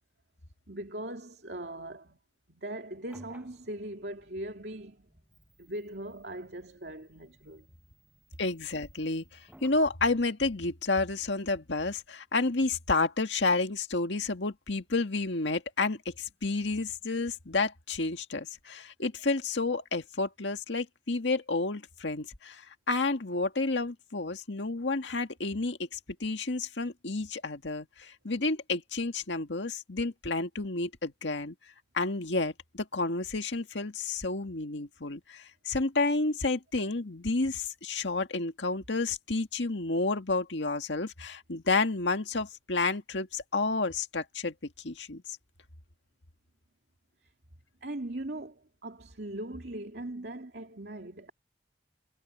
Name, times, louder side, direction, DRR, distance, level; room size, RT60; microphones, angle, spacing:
voice 1, 0.7-2.2 2.5-5.1 5.6-7.7 47.8-51.3, right 1 dB, 65° right, 2.7 m, -40 dB
sound 1, 2.9-9.9, right 1 dB, 10° right, 6.3 m, -60 dB
voice 2, 8.4-31.5 31.9-44.5 44.8-45.4, left 3 dB, 90° left, 1.9 m, -30 dB
head